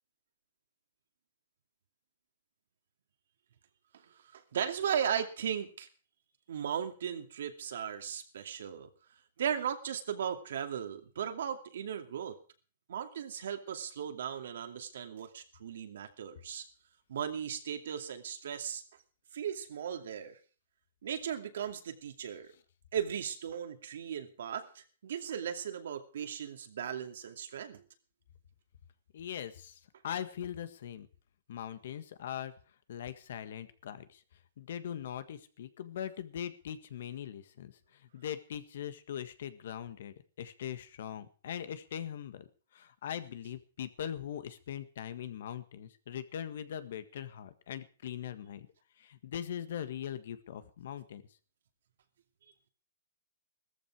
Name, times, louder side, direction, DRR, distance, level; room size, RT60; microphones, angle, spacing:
voice 1, 4.3-5.9 6.5-8.9 9.4-12.4 12.9-16.6 17.1-18.8 19.3-20.4 21.0-22.5 22.9-27.8, right 8 dB, 70° right, 6 dB, 2.4 m, -37 dB
voice 2, 29.1-31.1 31.5-32.5 32.9-34.2 34.6-42.5 42.7-48.7 49.0-51.2, left 9 dB, 65° left, 12 dB, 1.7 m, -41 dB
16.0 x 14.0 x 4.8 m, 0.38 s
hypercardioid pair, 155°, 0 cm